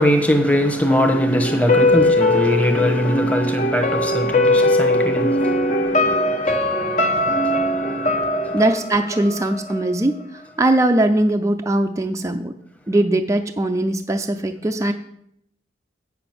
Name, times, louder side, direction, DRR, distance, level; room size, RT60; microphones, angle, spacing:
voice 1, 0.0-8.6, equal, 10° left, 1.1 m, -22 dB
sound 1, 0.9-9.9 10.2-10.3, left 1 dB, 40° left, 0.9 m, -20 dB
voice 2, 8.5-12.5 12.9-14.9, right 1 dB, 15° right, 0.4 m, -20 dB
8.4 x 7.0 x 6.0 m
head